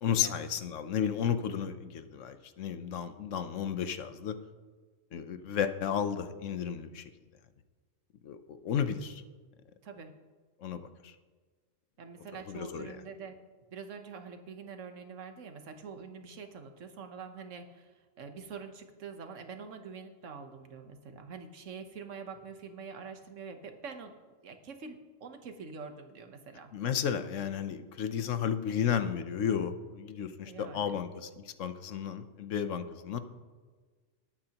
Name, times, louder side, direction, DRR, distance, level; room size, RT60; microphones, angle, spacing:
voice 1, 0.0-4.4 5.1-7.1 8.2-9.2 10.6-11.1 12.5-13.0 26.7-33.2, left 8 dB, 75° left, 10 dB, 1.1 m, -33 dB
voice 2, 12.0-13.4 13.7-24.1 24.4-26.7 30.4-31.0, right 5 dB, 70° right, 7 dB, 1.3 m, -45 dB
20.0 x 8.7 x 2.9 m, 1.4 s
omnidirectional pair, 1.3 m